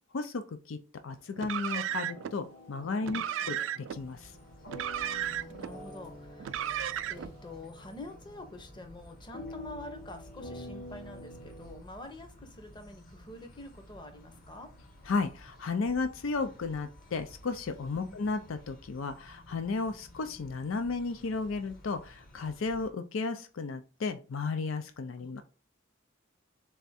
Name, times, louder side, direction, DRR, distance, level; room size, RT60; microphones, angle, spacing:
voice 1, 0.1-0.8 1.0-4.3 15.1-25.4, left 4 dB, 90° left, 9 dB, 0.5 m, -34 dB
Car, 1.4-2.3 3.0-4.0 4.7-5.7 6.4-7.3, right 10 dB, 70° right, 0.3 m, -34 dB
sound 1, 1.9-11.8, left 1 dB, 70° left, 1.0 m, -48 dB
voice 2, 3.1-3.7 4.9-6.7 7.1-14.7 17.9-18.3 25.2-25.4, left 2 dB, 25° left, 6 dB, 0.7 m, -47 dB
sound 2, 3.9-22.9, equal, 45° left, 1.1 m, -54 dB
3.5 x 3.4 x 4.1 m, 0.34 s
head